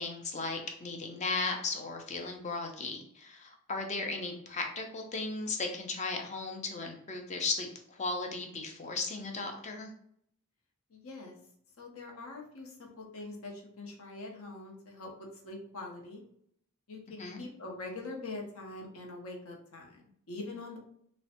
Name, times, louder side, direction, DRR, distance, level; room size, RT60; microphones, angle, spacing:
voice 1, 0.0-9.9 17.2-17.4, left 3 dB, 30° left, 3 dB, 0.5 m, -36 dB
voice 2, 10.9-11.4 11.8-16.2 16.9-20.8, left 2 dB, 65° left, 0 dB, 0.7 m, -44 dB
3.1 x 2.1 x 2.8 m, 0.68 s
head